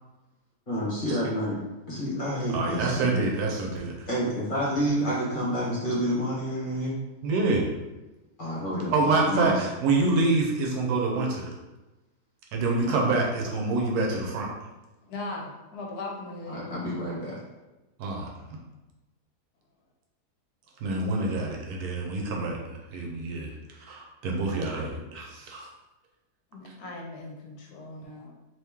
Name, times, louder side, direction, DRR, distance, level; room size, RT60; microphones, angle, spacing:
voice 1, 0.7-1.6 1.9-3.1 4.1-7.0 8.4-9.6 12.9-13.0 16.5-17.4, equal, 35° left, -7 dB, 1.2 m, -29 dB
voice 2, 2.5-4.1 7.2-7.6 8.9-11.5 12.5-14.5 18.0-18.3 20.8-25.7, right 3 dB, 75° right, -1 dB, 1.1 m, -27 dB
voice 3, 15.0-16.7 26.5-28.3, left 2 dB, 75° left, 0 dB, 1.1 m, -38 dB
3.0 x 2.8 x 3.5 m, 1.1 s
omnidirectional pair, 1.7 m